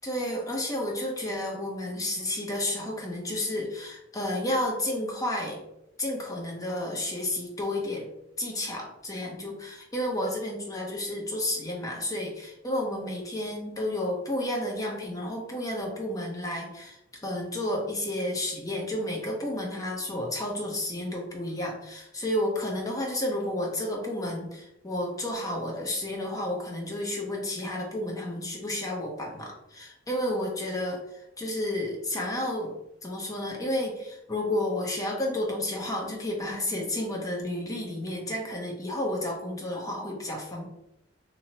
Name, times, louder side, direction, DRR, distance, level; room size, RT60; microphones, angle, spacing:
voice 1, 0.0-5.6 6.0-8.1 8.4-32.7 33.0-40.7, left 1 dB, 20° left, -1 dB, 0.7 m, -31 dB
3.0 x 2.6 x 2.7 m, 0.84 s
head